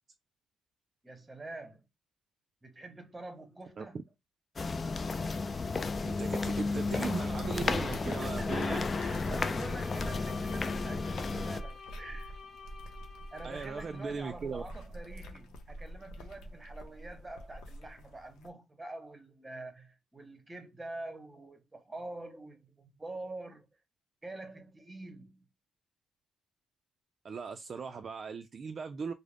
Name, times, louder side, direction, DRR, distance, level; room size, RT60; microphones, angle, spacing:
voice 1, 1.0-1.8 2.6-4.0 8.0-12.3 13.3-23.7 24.2-25.5, right 2 dB, 20° right, 0.9 m, -45 dB
sound 1, 4.6-11.6, left 4 dB, 35° left, 0.3 m, -33 dB
voice 2, 6.0-8.8 13.4-14.6 27.2-29.1, right 5 dB, 45° right, 0.3 m, -38 dB
sound 2, 7.3-18.5, right 1 dB, 85° left, 0.6 m, -45 dB
Bowed string instrument, 9.5-14.2, left 5 dB, 50° left, 0.8 m, -50 dB
2.4 x 2.0 x 3.3 m
cardioid pair, 90°, 0 cm